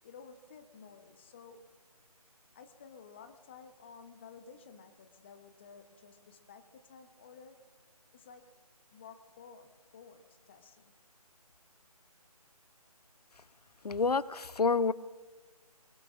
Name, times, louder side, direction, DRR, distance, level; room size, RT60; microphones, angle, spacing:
voice 1, 0.0-1.7 2.5-7.6 8.1-8.5 8.9-10.9, left 5 dB, 20° left, 8 dB, 0.8 m, -53 dB
voice 2, 13.8-14.9, left 4 dB, 85° left, 19 dB, 0.6 m, -28 dB
24.5 x 23.0 x 2.4 m, 1.4 s
figure-of-eight pair, 160°, 20 cm